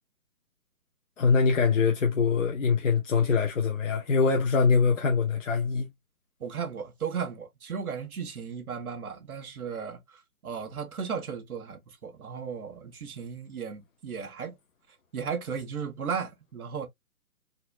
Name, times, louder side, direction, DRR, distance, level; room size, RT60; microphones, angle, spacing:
voice 1, 1.2-5.9, left 5 dB, 55° left, 0.9 m, -23 dB
voice 2, 6.4-14.6 15.1-16.9, right 6 dB, 75° right, 1.4 m, -35 dB
4.2 x 2.6 x 2.4 m
hypercardioid pair, 165°, 44 cm